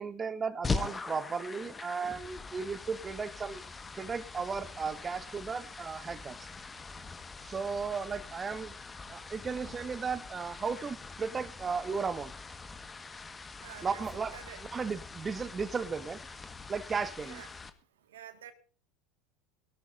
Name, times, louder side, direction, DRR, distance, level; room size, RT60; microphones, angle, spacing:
voice 1, 0.0-3.6 4.0-6.5 7.4-8.7 9.1-12.3 13.8-14.4 14.7-16.2 16.7-17.4, right 5 dB, 25° right, 14 dB, 1.6 m, -35 dB
sound 1, 0.6-17.7, left 4 dB, 20° left, 1.6 m, -42 dB
voice 2, 13.6-14.0 14.3-14.6 17.2-17.5 18.1-18.5, right 9 dB, 75° right, 10 dB, 1.9 m, -48 dB
22.5 x 13.0 x 2.7 m, 0.39 s
hypercardioid pair, 80°, 0 cm